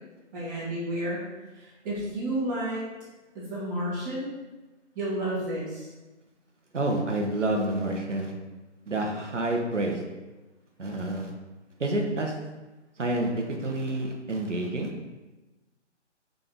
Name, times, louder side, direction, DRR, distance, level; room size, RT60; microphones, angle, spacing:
voice 1, 0.3-1.2 1.5-2.8 3.3-4.3 4.9-5.9, right 1 dB, 15° right, -8 dB, 1.2 m, -31 dB
voice 2, 6.7-8.3 8.9-10.0 10.8-11.3 11.8-12.3 13.0-14.9, right 1 dB, 85° right, 2 dB, 0.9 m, -28 dB
3.9 x 3.7 x 3.6 m, 1.1 s
figure-of-eight pair, 150°, 36 cm